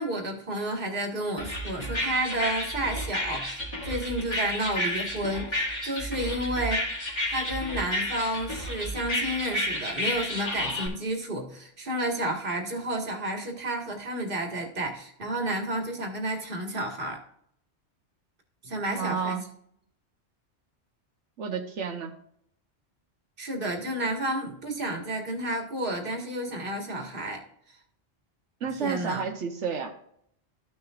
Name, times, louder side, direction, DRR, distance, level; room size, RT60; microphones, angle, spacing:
voice 1, 0.0-6.8 7.3-17.2 18.6-19.5 23.4-27.4 28.7-29.2, right 1 dB, 50° right, 2 dB, 1.8 m, -31 dB
sound 1, 1.4-10.9, left 1 dB, 25° left, 2.2 m, -31 dB
voice 2, 18.9-19.4 21.4-22.1 28.6-29.9, right 6 dB, 85° right, 3 dB, 1.3 m, -31 dB
14.0 x 6.4 x 2.4 m, 0.69 s
omnidirectional pair, 1.2 m